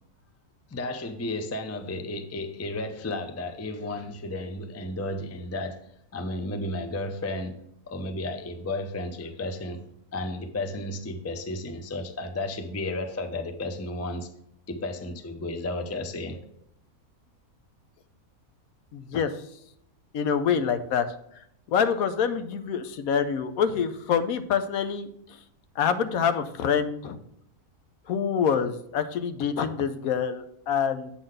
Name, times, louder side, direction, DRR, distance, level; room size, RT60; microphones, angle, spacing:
voice 1, 0.7-5.8 6.1-7.6 7.9-9.8 10.1-14.3 14.7-16.5, left 2 dB, 25° left, 8 dB, 0.3 m, -33 dB
voice 2, 18.9-19.3 20.1-21.1 21.7-25.1 25.8-27.2 28.1-31.1, left 7 dB, 75° left, 10 dB, 1.1 m, -26 dB
8.4 x 3.9 x 6.5 m, 0.74 s
omnidirectional pair, 1.6 m